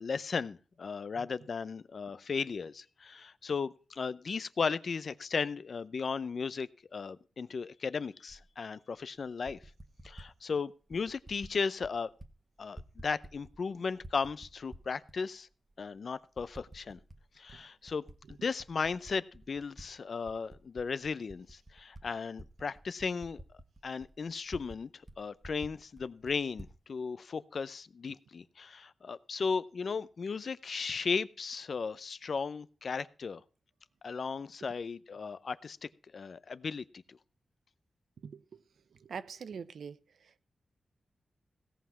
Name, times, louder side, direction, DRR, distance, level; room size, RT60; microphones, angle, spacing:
voice 1, 0.0-9.6 10.0-12.1 12.6-15.5 15.8-17.0 17.4-23.4 23.8-24.9 25.2-33.4 34.0-35.8 36.1-37.2, left 5 dB, 55° left, 0.5 m, -36 dB
Typing, 8.3-8.4 9.2-10.3 10.9-11.5 11.8-12.3 12.6-13.7 14.0-15.2 15.7-15.8 16.4-17.2 17.5-19.9 20.2-24.8 25.1-25.2 25.4-26.8, right 1 dB, 15° right, 1.3 m, -50 dB
voice 2, 38.2-38.6 38.9-40.5, right 6 dB, 80° right, 0.7 m, -45 dB
17.0 x 5.7 x 6.0 m
wide cardioid pair, 130°, 0 cm